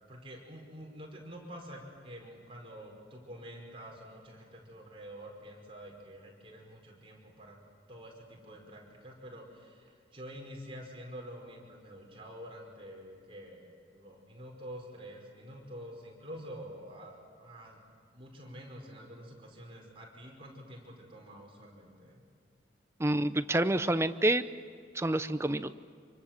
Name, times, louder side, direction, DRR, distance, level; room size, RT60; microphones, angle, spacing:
voice 1, 0.1-7.6 7.9-17.8 18.1-22.2, equal, 30° right, -1 dB, 5.3 m, -48 dB
voice 2, 23.0-24.4 24.9-25.7, right 1 dB, 15° right, 11 dB, 0.6 m, -28 dB
26.5 x 24.5 x 7.5 m, 2.3 s
head